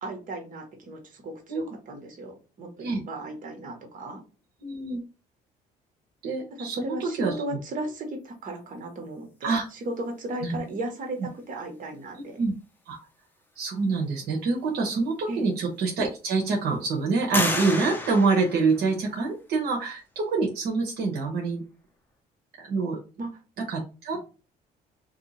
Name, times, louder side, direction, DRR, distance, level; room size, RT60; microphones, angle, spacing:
voice 1, 0.0-4.2 6.6-12.4 15.3-15.5 23.2-23.3, right 1 dB, 50° right, 4 dB, 1.3 m, -36 dB
voice 2, 4.6-5.0 6.2-7.3 9.4-9.6 10.4-10.6 12.4-12.5 12.9-13.0 13.6-21.6 22.6-23.0 23.7-24.2, right 4 dB, 70° right, -2 dB, 1.0 m, -26 dB
sound 1, 15.1-15.2 15.7-16.4 17.3-19.3, left 2 dB, 10° left, 0.7 m, -31 dB
2.7 x 2.7 x 4.0 m, 0.33 s
cardioid pair, 110°, 17 cm